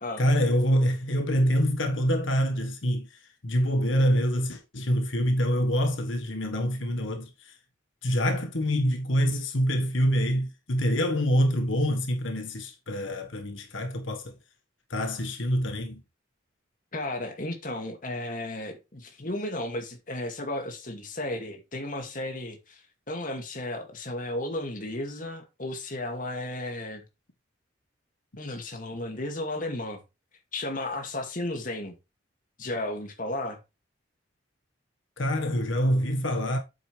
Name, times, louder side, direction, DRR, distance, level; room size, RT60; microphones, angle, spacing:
voice 1, 0.2-7.6 8.0-14.3 14.9-16.0 35.2-36.6, equal, 80° left, 1.5 m, -26 dB
voice 2, 16.9-22.8 23.1-27.0 28.4-30.0 30.5-31.9 32.6-33.6, left 1 dB, 45° left, 2.2 m, -34 dB
8.9 x 7.9 x 3.3 m
head